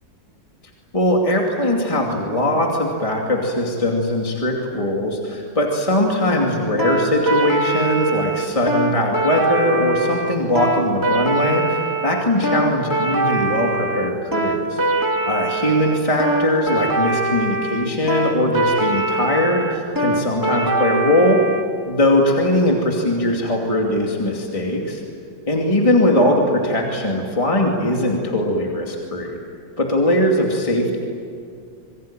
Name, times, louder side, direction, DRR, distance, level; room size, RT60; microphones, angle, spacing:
voice 1, 0.9-14.8 15.2-21.4 21.9-25.0 25.5-29.4 29.8-31.0, left 1 dB, 20° left, -1 dB, 2.7 m, -20 dB
sound 1, 6.8-21.6, right 2 dB, 10° right, 2.5 m, -22 dB
27.5 x 23.5 x 9.0 m, 2.3 s
omnidirectional pair, 2.0 m